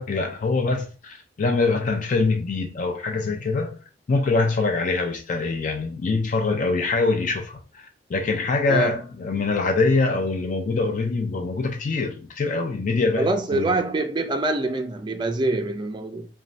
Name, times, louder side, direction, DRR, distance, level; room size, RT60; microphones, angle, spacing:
voice 1, 0.0-3.8 4.1-13.8, left 3 dB, 45° left, 0.4 m, -24 dB
voice 2, 13.2-16.3, right 2 dB, 25° right, 0.4 m, -25 dB
3.0 x 2.2 x 2.5 m
head